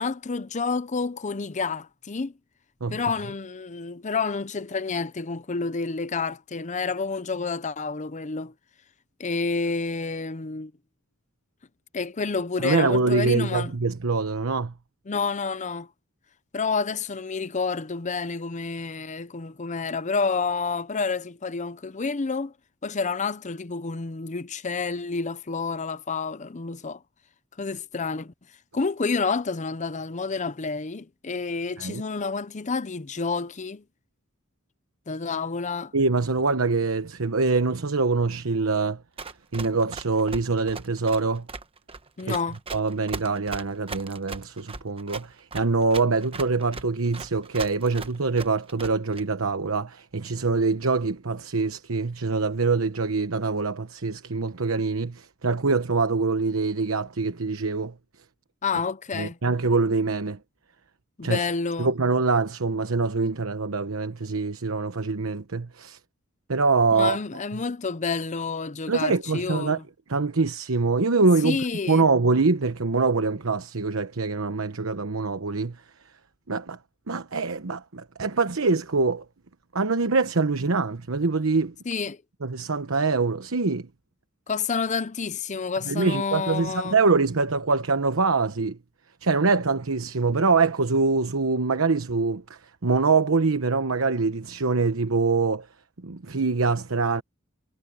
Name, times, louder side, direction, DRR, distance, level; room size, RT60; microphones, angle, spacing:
voice 1, 0.0-2.3 2.9-8.5 9.2-10.7 11.9-13.7 15.1-15.9 16.5-22.5 22.8-27.0 27.6-28.3 28.7-33.8 35.1-35.9 42.2-42.6 58.6-59.4 61.2-61.9 66.9-69.8 71.4-72.0 81.9-82.2 84.5-87.0, left 4 dB, 35° left, 0.7 m, -29 dB
voice 2, 12.6-14.7 31.8-32.0 35.9-39.0 39.5-41.5 42.2-42.4 42.7-57.9 59.1-60.4 61.2-61.4 61.8-66.0 66.5-67.2 68.9-69.8 70.1-71.6 71.9-75.8 76.5-76.8 77.1-79.2 79.7-81.7 82.4-83.9 85.9-88.8 89.2-95.7 96.0-97.2, right 4 dB, 90° right, 1.0 m, -24 dB
Run, 39.2-49.2, right 4 dB, 30° right, 1.1 m, -38 dB
head